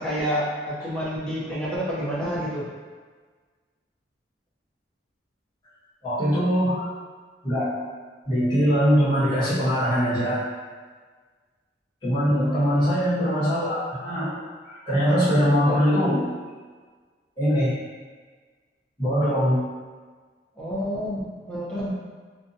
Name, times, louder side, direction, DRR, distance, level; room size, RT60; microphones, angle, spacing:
voice 1, 0.0-2.7 12.3-12.9 20.6-21.9, equal, 5° left, -9 dB, 0.6 m, -29 dB
voice 2, 6.0-6.9 7.4-7.8 8.3-10.4 12.0-14.4 14.6-16.3 17.4-17.7 19.0-19.6, equal, 25° left, -13 dB, 1.1 m, -22 dB
2.6 x 2.2 x 2.6 m, 1.5 s
head